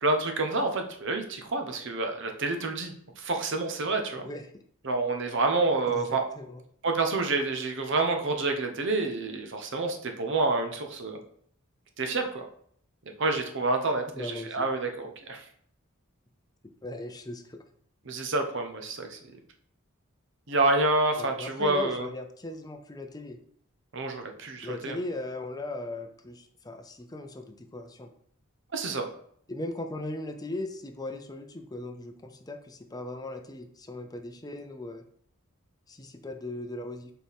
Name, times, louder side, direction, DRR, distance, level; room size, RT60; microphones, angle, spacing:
voice 1, 0.0-4.2 4.8-6.2 6.8-11.2 12.0-12.4 13.2-15.4 18.0-19.2 20.5-22.1 23.9-25.0 28.7-29.1, right 3 dB, 60° right, 4 dB, 0.9 m, -28 dB
voice 2, 5.9-6.6 14.1-14.7 16.8-17.6 21.2-23.4 24.6-28.1 29.5-35.0 35.9-37.1, left 2 dB, 20° left, 6 dB, 0.6 m, -38 dB
6.8 x 4.4 x 3.5 m, 0.63 s
head